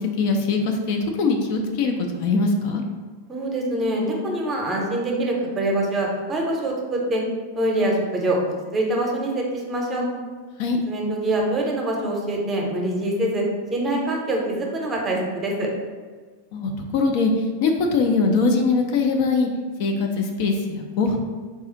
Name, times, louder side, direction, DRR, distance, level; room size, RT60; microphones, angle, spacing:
voice 1, 0.0-2.8 10.6-10.8 16.5-19.5 19.8-21.2, left 4 dB, 45° left, 3 dB, 0.4 m, -22 dB
voice 2, 3.3-7.2 7.6-8.4 8.7-10.1 10.9-13.4 13.7-15.7, right 1 dB, 20° right, -1 dB, 0.7 m, -24 dB
3.7 x 2.4 x 3.8 m, 1.5 s
figure-of-eight pair, 90°, 0 cm